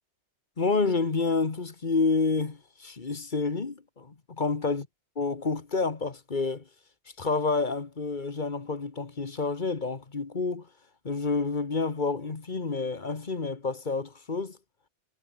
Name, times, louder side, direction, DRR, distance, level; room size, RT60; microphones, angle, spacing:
voice 1, 0.6-4.9 5.2-6.6 7.2-10.7 11.0-14.6, left 4 dB, 45° left, 1.7 m, -29 dB
omnidirectional pair, 1.2 m